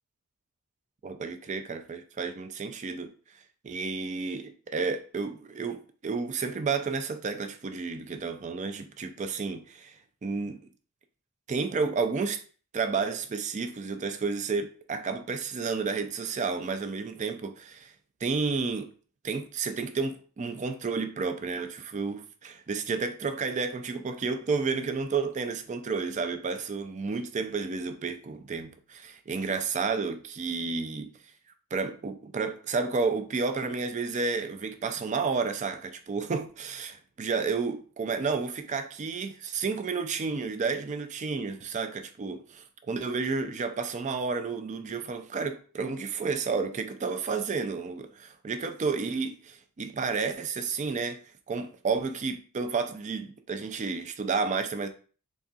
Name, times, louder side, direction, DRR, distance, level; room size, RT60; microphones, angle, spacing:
voice 1, 1.0-3.1 3.6-9.9 10.2-10.6 11.5-12.4 12.7-17.9 18.2-18.9 19.2-31.1 31.7-51.2 51.5-54.9, right 4 dB, 35° right, 0.4 m, -31 dB
4.0 x 3.7 x 2.3 m
head